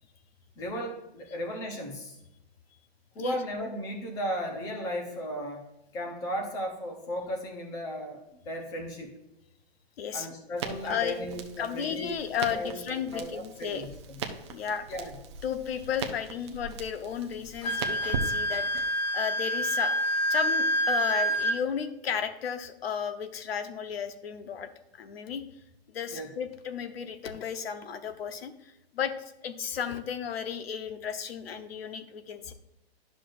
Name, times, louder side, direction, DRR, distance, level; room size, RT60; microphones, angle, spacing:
voice 1, 0.6-2.2 3.1-5.6 5.9-9.1 10.1-12.1 12.5-12.8 13.1-14.2 14.9-15.2 26.1-26.3, equal, 10° left, 2 dB, 0.7 m, -35 dB
voice 2, 10.0-10.3 10.8-11.2 11.6-13.9 14.5-14.9 15.4-20.0 20.3-25.4 25.9-32.5, left 8 dB, 70° left, 9 dB, 1.0 m, -34 dB
Crackle, 10.6-18.9, right 6 dB, 25° right, 0.5 m, -40 dB
Wind instrument woodwind instrument, 17.6-21.6, equal, 40° left, 1.2 m, -27 dB
11.5 x 6.0 x 2.5 m, 0.89 s
hypercardioid pair, 165°, 32 cm